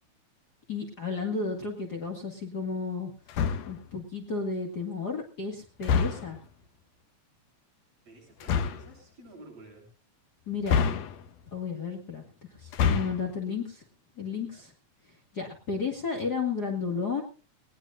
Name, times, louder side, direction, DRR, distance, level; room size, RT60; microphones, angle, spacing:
voice 1, 0.7-3.1 3.6-6.4 10.5-11.0 11.5-12.2 12.6-13.8 14.2-14.7 15.3-17.2, left 5 dB, 35° left, 1 dB, 2.3 m, -33 dB
sound 1, 3.3-3.9 5.8-6.4 8.4-8.9 10.6-11.4 12.6-13.3, left 6 dB, 70° left, 2.0 m, -27 dB
voice 2, 8.0-9.9 14.4-14.7, right 2 dB, 55° right, -2 dB, 9.1 m, -50 dB
19.5 x 19.5 x 2.5 m, 0.34 s
omnidirectional pair, 3.4 m